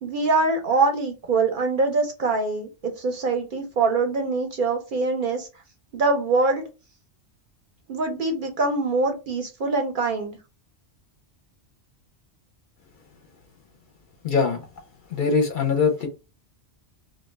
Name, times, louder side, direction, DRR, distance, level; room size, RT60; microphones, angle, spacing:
voice 1, 0.0-5.5 5.9-6.6 7.9-10.3, right 3 dB, 55° right, 4 dB, 0.6 m, -24 dB
voice 2, 14.2-14.6 15.1-16.1, left 5 dB, 55° left, 3 dB, 0.6 m, -22 dB
2.3 x 2.1 x 3.1 m, 0.29 s
omnidirectional pair, 1.2 m